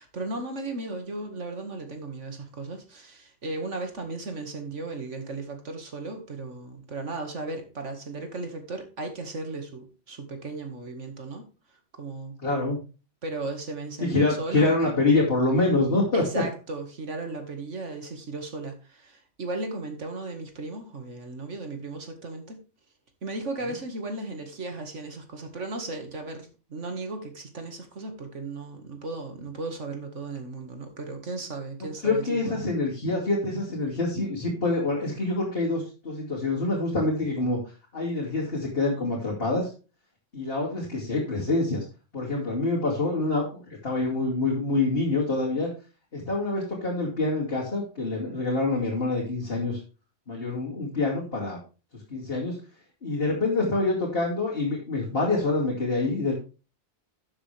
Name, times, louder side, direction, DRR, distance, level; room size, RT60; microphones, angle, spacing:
voice 1, 0.0-11.4 11.9-12.4 13.2-14.9 16.1-22.6 23.2-32.5, right 2 dB, 80° right, 2.3 m, -36 dB
voice 2, 12.4-12.8 14.0-16.4 31.8-39.7 40.3-41.8 42.1-45.7 46.1-49.8 50.3-51.6 51.9-52.6 53.0-56.3, left 2 dB, 50° left, 3.0 m, -26 dB
13.0 x 7.2 x 3.4 m
omnidirectional pair, 1.2 m